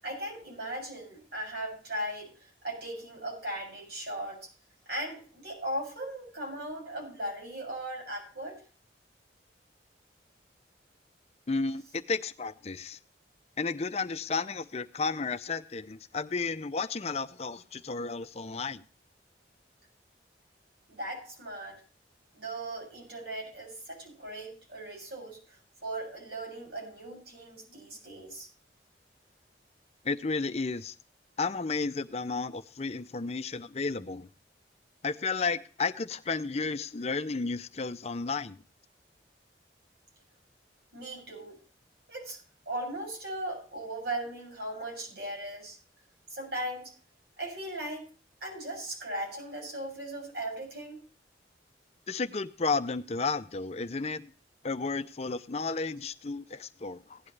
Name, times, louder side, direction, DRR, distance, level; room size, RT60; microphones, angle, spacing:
voice 1, 0.0-4.5 4.9-8.6 20.9-21.8 22.3-28.5 40.9-41.6 42.1-45.8 46.3-46.9 47.4-48.0 48.4-51.0, right 1 dB, 60° right, 7.5 m, -38 dB
voice 2, 11.5-13.0 13.6-18.8 30.0-31.0 31.4-34.3 35.0-38.6 52.1-54.3 54.6-57.2, left 4 dB, 35° left, 0.6 m, -32 dB
16.5 x 11.0 x 3.3 m
head